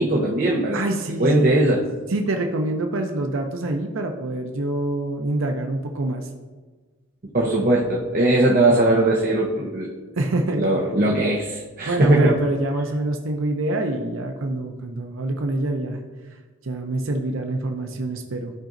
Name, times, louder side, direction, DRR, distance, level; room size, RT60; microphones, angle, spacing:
voice 1, 0.0-0.9 1.2-1.8 7.3-9.9 10.6-12.4, right 2 dB, 45° right, -2 dB, 0.8 m, -19 dB
voice 2, 0.7-1.4 2.1-6.3 10.2-10.7 11.9-16.0 16.6-18.5, right 2 dB, 75° right, 3 dB, 0.6 m, -26 dB
13.5 x 5.0 x 2.6 m, 1.3 s
head